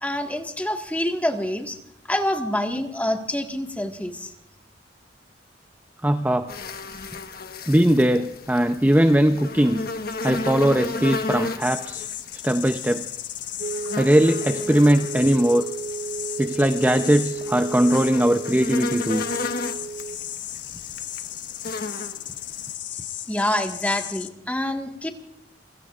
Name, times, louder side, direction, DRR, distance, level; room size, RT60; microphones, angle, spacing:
voice 1, 0.0-1.8 2.1-4.3 23.3-25.1, left 1 dB, 10° left, 4 dB, 1.6 m, -26 dB
voice 2, 6.0-6.5 7.7-9.8 10.2-12.1 12.4-13.0 14.0-15.7 16.4-19.2, right 1 dB, 10° right, 7 dB, 0.6 m, -20 dB
sound 1, 6.5-22.7, left 3 dB, 55° left, 1.3 m, -34 dB
sound 2, 11.6-24.3, left 11 dB, 90° left, 1.1 m, -35 dB
sound 3, 13.6-20.2, right 4 dB, 65° right, 1.8 m, -34 dB
29.5 x 16.5 x 2.5 m, 0.80 s
head